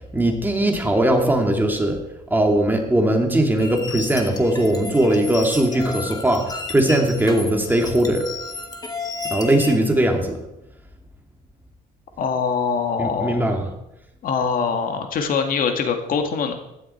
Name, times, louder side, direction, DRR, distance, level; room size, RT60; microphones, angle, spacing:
voice 1, 0.1-2.0 2.3-8.3 9.3-10.4 13.0-13.7, right 1 dB, 10° right, 2 dB, 2.7 m, -19 dB
sound 1, 3.6-9.8, left 4 dB, 20° left, 2.2 m, -33 dB
voice 2, 12.2-13.6 14.2-16.6, left 6 dB, 55° left, 5 dB, 2.1 m, -23 dB
16.0 x 12.0 x 4.6 m, 0.88 s
cardioid pair, 110°, 17 cm